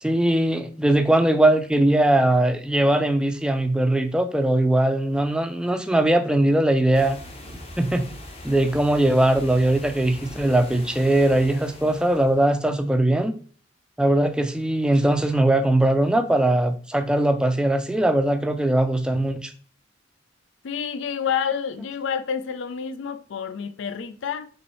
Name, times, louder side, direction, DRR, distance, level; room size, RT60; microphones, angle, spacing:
voice 1, 0.0-7.2 7.8-8.1 8.4-13.4 14.0-19.5, right 1 dB, 5° right, 0.3 m, -20 dB
sound 1, 6.9-12.5, left 1 dB, 30° left, 0.7 m, -41 dB
voice 2, 20.6-24.5, left 7 dB, 70° left, 0.4 m, -29 dB
5.5 x 3.1 x 3.1 m
head